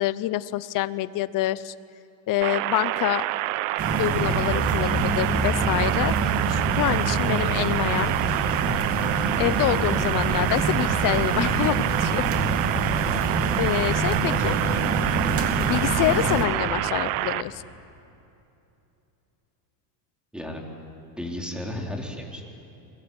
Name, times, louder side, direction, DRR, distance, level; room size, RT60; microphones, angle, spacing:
voice 1, 0.0-1.7 2.3-3.2 4.0-8.1 9.4-12.2 13.6-14.6 15.6-17.6, left 15 dB, 45° left, 16 dB, 0.9 m, -26 dB
sound 1, 2.4-17.4, right 16 dB, 75° right, 1.0 m, -27 dB
sound 2, 3.8-16.5, right 3 dB, 30° right, 2.9 m, -25 dB
voice 2, 20.3-20.7 21.2-22.7, left 1 dB, ahead, 0 dB, 3.7 m, -34 dB
29.0 x 22.0 x 8.9 m, 2.8 s
cardioid pair, 150°, 46 cm